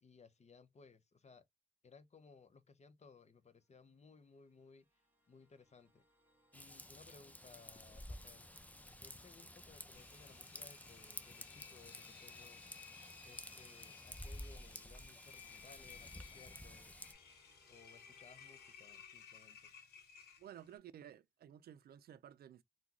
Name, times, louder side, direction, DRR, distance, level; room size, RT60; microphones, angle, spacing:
voice 1, 0.0-1.5 1.8-5.0 5.3-6.0 6.5-8.5 9.0-12.6 13.2-17.1 17.7-19.7, left 4 dB, 45° left, 0.8 m, -62 dB
sound 1, 3.5-18.7, equal, 10° right, 1.3 m, -73 dB
Raindrop / Vehicle horn car horn honking / Trickle dribble, 6.5-17.1, left 1 dB, 10° left, 0.6 m, -52 dB
Engine, 9.9-20.8, left 7 dB, 90° left, 0.9 m, -58 dB
voice 2, 20.4-22.6, right 10 dB, 75° right, 0.4 m, -55 dB
3.7 x 2.3 x 2.9 m
cardioid pair, 50°, 16 cm